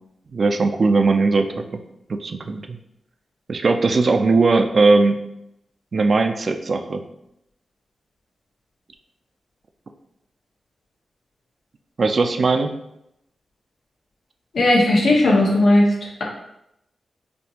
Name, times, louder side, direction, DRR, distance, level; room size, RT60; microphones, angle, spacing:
voice 1, 0.3-1.6 2.1-2.8 3.5-5.2 5.9-7.0 12.0-12.7, right 3 dB, 50° right, 6 dB, 0.3 m, -19 dB
voice 2, 14.5-15.9, left 1 dB, 80° left, -3 dB, 1.0 m, -16 dB
4.4 x 2.4 x 2.8 m, 0.82 s
cardioid pair, 85°, 0 cm